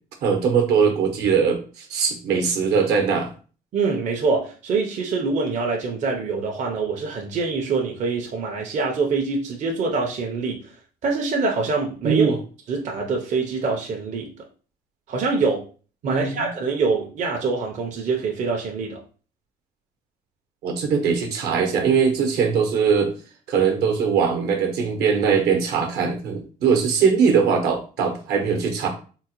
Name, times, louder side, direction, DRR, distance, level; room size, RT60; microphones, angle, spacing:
voice 1, 0.2-3.3 12.0-12.4 16.0-16.5 20.6-23.1 23.5-28.9, right 6 dB, 75° right, 4 dB, 0.9 m, -21 dB
voice 2, 3.7-10.7 11.0-12.4 12.7-14.3 15.1-15.6 16.0-19.0, right 4 dB, 45° right, 1 dB, 0.6 m, -25 dB
3.7 x 2.1 x 2.9 m, 0.38 s
cardioid pair, 110°, 17 cm